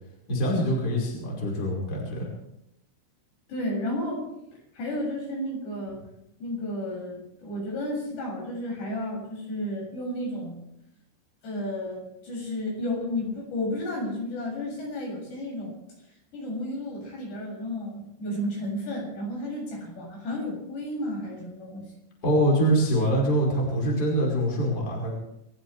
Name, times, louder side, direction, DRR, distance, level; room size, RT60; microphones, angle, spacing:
voice 1, 0.3-2.3 22.2-25.1, equal, 20° left, -3 dB, 5.2 m, -24 dB
voice 2, 3.5-4.2 4.7-6.0 6.4-10.6 11.4-15.7 16.3-21.9, left 1 dB, 55° left, -2 dB, 9.1 m, -32 dB
27.5 x 15.0 x 3.4 m, 0.81 s
omnidirectional pair, 5.7 m